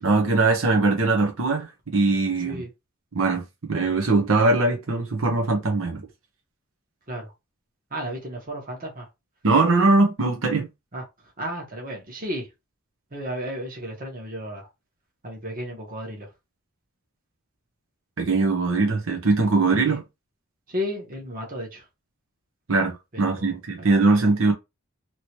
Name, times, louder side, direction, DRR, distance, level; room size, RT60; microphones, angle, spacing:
voice 1, 0.0-2.6 3.1-6.0 9.4-10.7 18.2-20.0 22.7-24.5, right 3 dB, 80° right, 0.8 m, -21 dB
voice 2, 7.9-9.1 10.9-11.0 11.4-12.5 13.1-14.7 15.2-16.3 19.8-20.0 20.7-21.8 23.1-23.6, equal, 40° right, 1.2 m, -33 dB
3.0 x 2.9 x 2.9 m
head